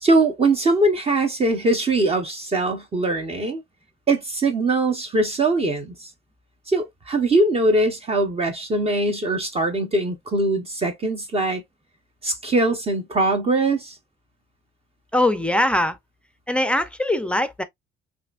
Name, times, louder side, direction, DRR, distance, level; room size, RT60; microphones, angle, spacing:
voice 1, 0.0-3.6 4.1-6.1 6.7-11.6 12.2-14.0, right 2 dB, 30° right, 1.0 m, -21 dB
voice 2, 15.1-16.0 16.5-17.6, left 1 dB, 5° left, 0.5 m, -21 dB
5.7 x 2.7 x 2.4 m
cardioid pair, 120°, 21 cm